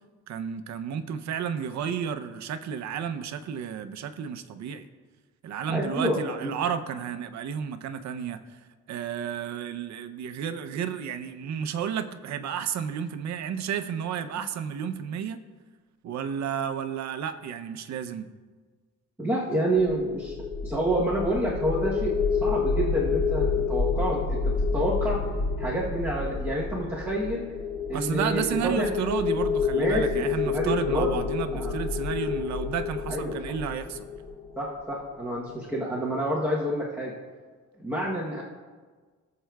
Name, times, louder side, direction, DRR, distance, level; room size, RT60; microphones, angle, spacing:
voice 1, 0.3-4.9 5.4-8.4 8.9-15.4 16.0-18.3 27.9-34.1, right 8 dB, 65° right, 9 dB, 0.6 m, -32 dB
voice 2, 5.7-6.5 19.2-20.3 20.6-22.1 22.4-25.2 25.6-27.4 27.9-28.9 29.7-31.2 31.5-31.7 33.1-33.4 34.6-37.1 37.8-38.4, right 1 dB, 5° right, -6 dB, 0.9 m, -28 dB
sound 1, 19.8-34.9, left 5 dB, 20° left, 0.6 m, -29 dB
18.5 x 7.4 x 2.3 m, 1.4 s
cardioid pair, 180°, 30 cm